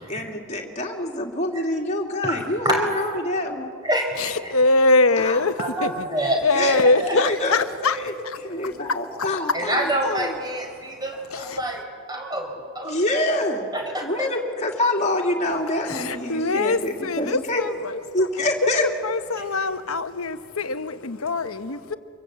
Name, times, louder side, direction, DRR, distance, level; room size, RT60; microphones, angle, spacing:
voice 1, 0.1-3.7 5.2-5.4 6.5-6.8 7.1-8.1 8.4-10.3 12.8-13.7 14.0-17.6 18.1-18.8, left 1 dB, 30° left, 0 dB, 2.4 m, -26 dB
voice 2, 2.2-3.2 3.8-4.3 5.6-6.4 6.7-7.2 9.5-11.8 12.1-13.4 13.7-14.3, right 1 dB, 20° right, 3 dB, 4.5 m, -27 dB
voice 3, 4.2-8.0 8.2-8.8 10.7-11.0 11.3-11.6 15.8-18.3 18.6-22.0, left 3 dB, 80° left, 10 dB, 1.1 m, -23 dB
25.5 x 21.5 x 8.1 m, 2.3 s
head